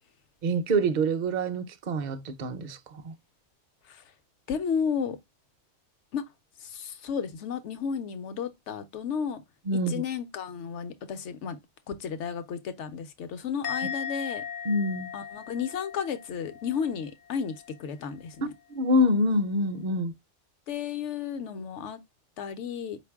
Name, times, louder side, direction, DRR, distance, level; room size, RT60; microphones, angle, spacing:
voice 1, 0.4-3.1 9.7-10.0 14.7-15.1 18.7-20.1, equal, 50° right, 0.6 m, -26 dB
voice 2, 4.5-5.2 6.1-6.2 6.6-9.4 9.9-11.6 11.9-14.4 15.1-18.5 20.7-22.0 22.4-23.0, left 7 dB, 75° left, 1.0 m, -33 dB
Musical instrument, 13.6-17.0 17.3-17.7, left 7 dB, 55° left, 0.5 m, -38 dB
5.0 x 2.6 x 3.4 m
omnidirectional pair, 1.2 m